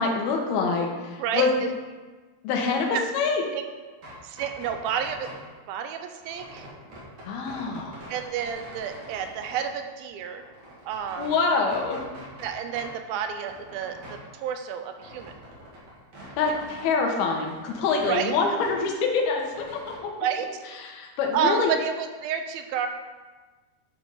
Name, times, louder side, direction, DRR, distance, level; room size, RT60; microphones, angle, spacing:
voice 1, 0.0-1.5 2.4-2.9 3.1-3.4 7.3-8.0 11.2-12.0 16.4-19.4 19.7-20.1 20.8-21.7, left 4 dB, 75° left, 1 dB, 3.0 m, -25 dB
voice 2, 1.2-1.7 3.5-3.6 4.2-5.3 5.7-6.7 8.1-10.4 10.9-11.3 12.4-15.3 16.5-16.7 18.1-18.3 20.2-20.5 21.3-22.9, right 8 dB, 80° right, 7 dB, 2.3 m, -30 dB
sound 1, 3.9-5.5 6.2-9.7 10.1-11.4 11.7-12.9 13.2-16.9 17.2-18.8 19.1-20.0, equal, 50° right, 3.2 m, -45 dB
11.5 x 5.2 x 4.9 m, 1.3 s
omnidirectional pair, 4.6 m